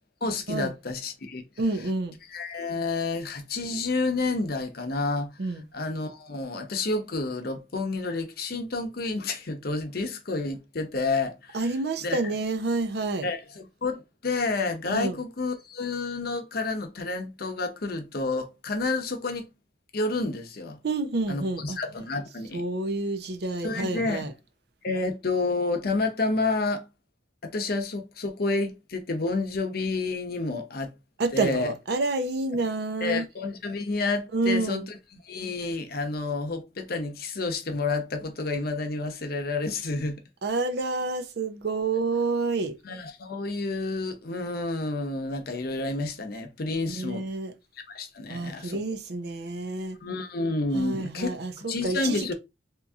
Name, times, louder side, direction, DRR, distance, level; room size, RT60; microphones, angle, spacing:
voice 1, 0.2-1.4 2.3-5.4 5.7-11.7 12.0-12.2 13.2-19.5 19.9-20.8 21.3-22.6 23.6-24.3 24.8-26.9 27.4-30.9 31.3-31.7 33.0-40.2 42.8-47.3 47.9-48.8 50.0-51.4 51.7-52.3, left 3 dB, 55° left, 0.7 m, -30 dB
voice 2, 1.6-2.2 5.4-5.6 11.5-13.3 14.9-15.2 20.8-21.8 22.5-24.3 31.2-33.3 34.3-34.9 40.4-42.8 46.9-47.5 48.3-50.0 50.7-52.3, right 3 dB, 60° right, 0.6 m, -28 dB
2.9 x 2.7 x 3.5 m
head